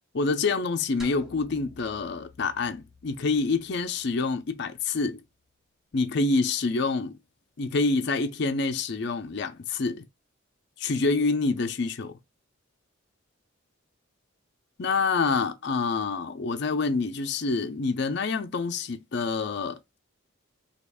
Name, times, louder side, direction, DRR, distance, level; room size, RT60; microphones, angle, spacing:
voice 1, 0.1-5.2 5.9-7.1 7.6-10.1 10.8-12.2 14.8-20.0, left 4 dB, 50° left, 0.5 m, -27 dB
sound 1, 1.0-5.4, left 2 dB, ahead, 0.5 m, -51 dB
3.5 x 2.3 x 3.4 m
head